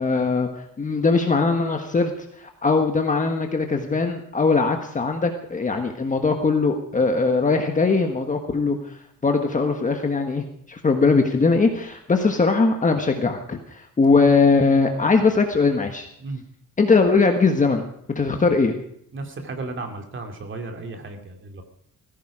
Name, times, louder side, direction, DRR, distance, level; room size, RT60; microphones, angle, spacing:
voice 1, 0.0-2.1 2.4-16.1 16.8-17.9 18.1-18.7, left 4 dB, 25° left, 4 dB, 1.4 m, -20 dB
voice 2, 19.1-21.6, right 3 dB, 35° right, 4 dB, 2.5 m, -34 dB
18.5 x 15.5 x 5.0 m, 0.68 s
wide cardioid pair, 180°, 33 cm